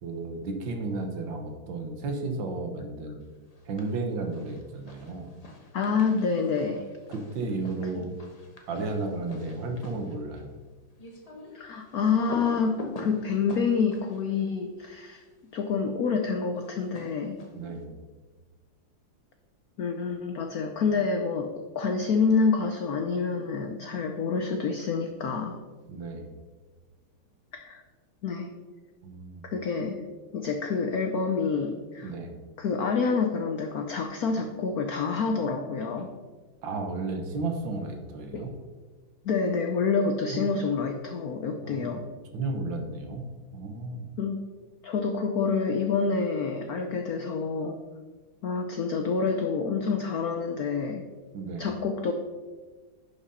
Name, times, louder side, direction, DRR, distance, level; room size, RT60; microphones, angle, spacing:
voice 1, 0.0-3.2 3.6-5.3 7.1-8.1 8.7-10.5 17.5-18.0 25.9-26.3 29.0-29.4 32.0-32.3 36.6-38.5 40.3-40.5 41.6-41.9 42.3-44.1 51.3-51.7, right 3 dB, 65° right, 4 dB, 1.7 m, -33 dB
sound 1, 3.5-4.0 4.3-15.3 16.6-17.8, left 2 dB, 35° left, 0.5 m, -45 dB
voice 2, 5.7-6.8 8.0-8.1 11.5-15.2 15.5-17.4 19.8-25.6 27.5-27.8 28.2-28.5 29.4-30.0 30.3-32.1 32.6-36.1 38.3-38.5 39.2-42.1 44.2-44.4 44.8-47.8 48.4-51.1 51.6-52.1, left 5 dB, 80° left, 5 dB, 0.8 m, -27 dB
11.0 x 5.1 x 4.1 m, 1.4 s
omnidirectional pair, 2.4 m